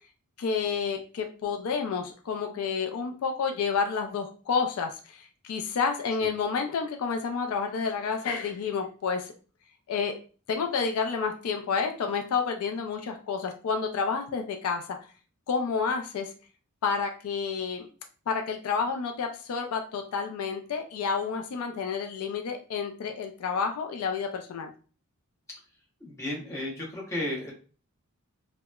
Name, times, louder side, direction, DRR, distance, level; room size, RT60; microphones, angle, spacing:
voice 1, 0.4-9.3 9.9-10.1 10.5-14.8 15.5-16.3 16.8-17.9 18.3-24.7, left 5 dB, 75° left, 4 dB, 0.4 m, -30 dB
voice 2, 26.0-27.5, left 1 dB, 15° left, -4 dB, 0.7 m, -33 dB
2.8 x 2.0 x 2.2 m, 0.38 s
head